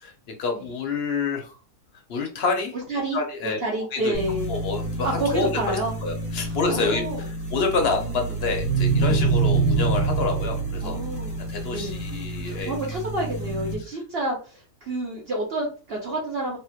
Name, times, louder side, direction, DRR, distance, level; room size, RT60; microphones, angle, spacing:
voice 1, 0.4-1.6 2.1-2.7 3.1-3.6 3.9-4.1 4.5-11.0 11.5-12.8, left 4 dB, 50° left, 3 dB, 0.9 m, -28 dB
voice 2, 2.9-4.5 5.0-5.9 6.4-7.2 9.0-9.4 10.8-11.4 11.7-12.1 12.4-16.6, right 1 dB, 50° right, -2 dB, 0.9 m, -29 dB
sound 1, 4.1-13.7, right 4 dB, 5° left, 1.2 m, -27 dB
3.5 x 2.9 x 2.3 m, 0.37 s
omnidirectional pair, 1.5 m